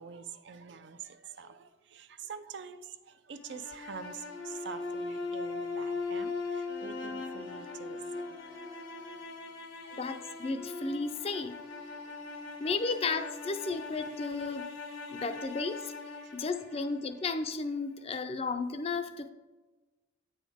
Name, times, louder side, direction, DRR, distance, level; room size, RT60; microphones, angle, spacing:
voice 1, 0.0-8.6 9.0-9.2 9.8-10.1 11.9-12.1 12.5-12.6 13.7-13.8 15.1-15.3 16.2-16.4 16.7-16.9, right 6 dB, 60° right, 10 dB, 0.5 m, -46 dB
sound 1, 3.3-17.5, left 4 dB, 85° left, 1.0 m, -40 dB
voice 2, 9.9-11.6 12.6-14.7 15.1-15.9 16.3-19.3, left 4 dB, 30° left, 9 dB, 0.4 m, -33 dB
8.1 x 5.7 x 3.5 m, 1.2 s
head